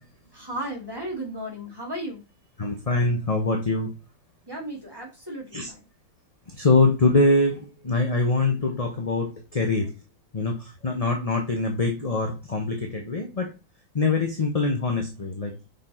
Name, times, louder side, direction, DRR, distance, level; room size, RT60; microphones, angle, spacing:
voice 1, 0.3-2.2 4.5-5.9, right 1 dB, 10° right, -1 dB, 2.9 m, -35 dB
voice 2, 2.6-3.9 5.5-5.7 6.5-9.9 10.3-13.5 13.9-15.6, left 3 dB, 25° left, 3 dB, 0.9 m, -24 dB
5.9 x 5.4 x 4.4 m, 0.28 s
omnidirectional pair, 2.0 m